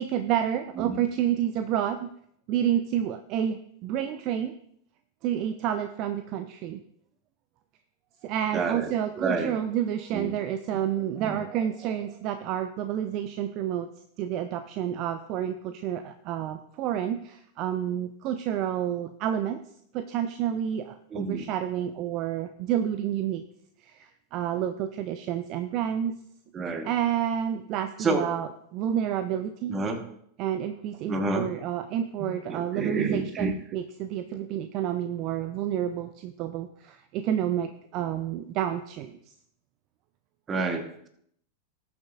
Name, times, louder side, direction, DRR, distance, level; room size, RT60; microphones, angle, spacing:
voice 1, 0.0-2.1 2.5-4.5 5.2-6.8 8.2-13.9 14.2-19.6 19.9-23.4 23.8-26.1 26.8-29.8 30.4-39.2, right 10 dB, 40° right, 10 dB, 0.5 m, -29 dB
voice 2, 8.5-9.5 10.1-10.3 11.2-11.4 21.1-21.4 26.5-26.9 28.0-28.3 29.7-30.0 31.1-31.5 32.5-33.5 40.5-41.1, right 3 dB, 20° right, 8 dB, 1.2 m, -29 dB
18.5 x 6.9 x 2.5 m, 0.70 s
figure-of-eight pair, 90°, 0 cm